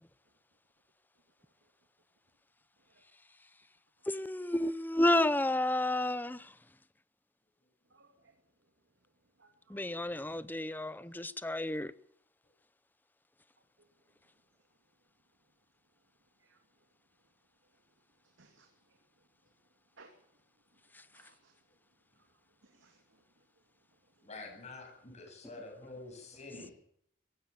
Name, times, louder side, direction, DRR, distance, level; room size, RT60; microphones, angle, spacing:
voice 1, 1.4-1.7 2.9-3.0 7.9-8.4 9.4-10.1 11.0-11.2 13.8-13.9 16.4-16.6 17.6-17.8 18.2-19.3 20.0-20.2 20.7-21.6 22.1-22.3 22.6-23.5 24.1-24.2 26.5-26.7, right 2 dB, 75° right, 2.8 m, -62 dB
voice 2, 4.1-6.5 9.7-11.9, left 1 dB, 10° left, 0.8 m, -31 dB
voice 3, 24.2-26.7, left 3 dB, 35° left, 7.9 m, -47 dB
21.5 x 17.0 x 7.1 m
head